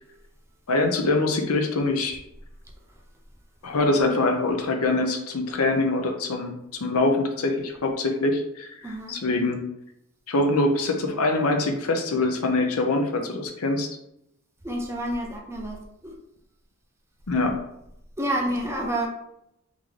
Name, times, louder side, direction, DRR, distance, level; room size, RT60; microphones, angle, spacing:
voice 1, 0.7-2.2 3.6-9.6 10.3-13.9 17.3-17.6, left 2 dB, 75° left, 4 dB, 0.7 m, -24 dB
voice 2, 8.8-9.2 14.6-15.8 16.0-16.1 18.2-19.1, right 1 dB, 10° right, 1 dB, 0.6 m, -28 dB
3.7 x 3.6 x 3.2 m, 0.79 s
head